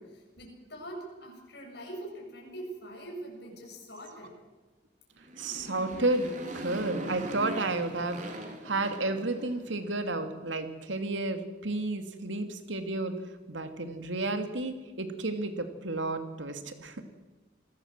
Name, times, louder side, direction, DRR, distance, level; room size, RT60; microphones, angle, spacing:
voice 1, 0.0-4.4, right 1 dB, 60° left, -1 dB, 8.0 m, -43 dB
Motorcycle, 5.2-9.8, right 1 dB, 40° right, 3.9 m, -40 dB
voice 2, 5.4-8.2 8.6-13.1 13.5-17.0, right 2 dB, 85° right, 7 dB, 2.8 m, -32 dB
27.5 x 19.5 x 7.6 m, 1.2 s
head